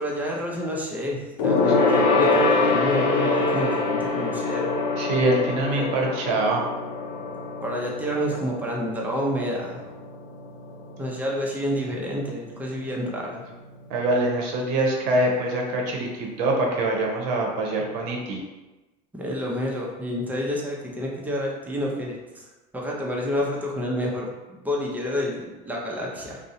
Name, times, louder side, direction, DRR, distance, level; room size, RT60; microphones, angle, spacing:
voice 1, 0.0-4.7 5.7-5.9 7.6-9.8 11.0-13.4 19.2-22.4 22.7-26.4, equal, 10° right, -2 dB, 0.5 m, -29 dB
Gong, 1.4-11.2 11.5-11.7 12.0-12.1, left 3 dB, 75° left, 0.5 m, -24 dB
voice 2, 5.0-6.6 13.9-18.4, right 2 dB, 70° right, 0 dB, 0.7 m, -24 dB
2.7 x 2.0 x 2.5 m, 1.1 s
supercardioid pair, 120°, 21 cm